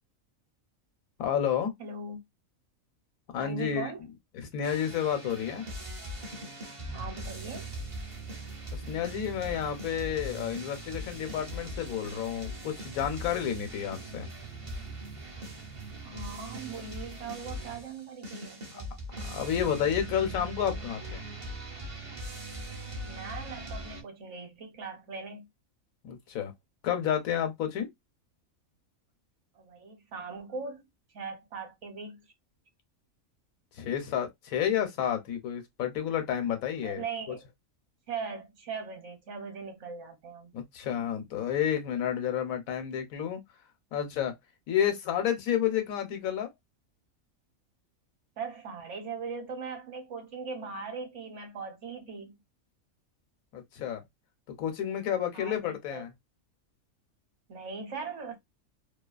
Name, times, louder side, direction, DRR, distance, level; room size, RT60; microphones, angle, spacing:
voice 1, 1.2-1.7 3.3-3.9 4.5-5.7 8.7-14.3 18.7-18.8 19.2-21.2 26.0-26.5 26.8-27.9 33.7-37.0 40.5-43.4 43.9-44.3 44.7-46.5 53.5-54.0 54.6-56.1, left 9 dB, 80° left, 1.1 m, -30 dB
voice 2, 1.8-2.2 3.4-4.0 6.9-7.8 16.0-19.0 23.0-25.5 29.5-30.9 31.1-32.2 36.8-37.5 38.1-40.5 48.4-52.4 55.3-56.0 57.5-58.4, right 4 dB, 60° right, 1.0 m, -40 dB
sound 1, 4.6-24.0, right 1 dB, 40° right, 0.5 m, -40 dB
2.7 x 2.3 x 2.3 m
omnidirectional pair, 1.4 m